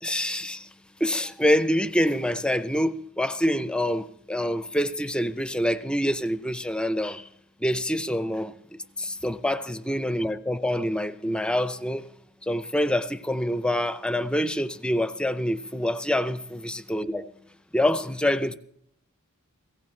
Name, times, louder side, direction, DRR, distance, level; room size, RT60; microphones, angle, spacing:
voice 1, 0.0-0.7 1.0-7.3 7.6-12.0 12.4-17.3 17.7-18.6, equal, 5° left, 0.5 m, -26 dB
19.5 x 16.5 x 3.2 m
head